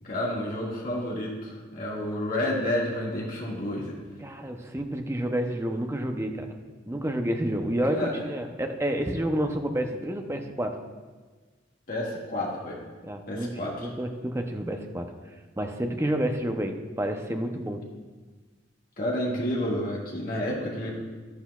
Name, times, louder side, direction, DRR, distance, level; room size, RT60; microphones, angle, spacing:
voice 1, 0.0-4.0 7.9-8.3 11.9-12.8 13.3-13.9 19.0-20.9, left 1 dB, 45° left, -4 dB, 1.9 m, -30 dB
voice 2, 4.2-6.6 6.9-10.8 13.0-15.1 15.6-17.9, right 1 dB, 15° right, 5 dB, 0.6 m, -29 dB
12.0 x 10.0 x 2.4 m, 1.4 s
head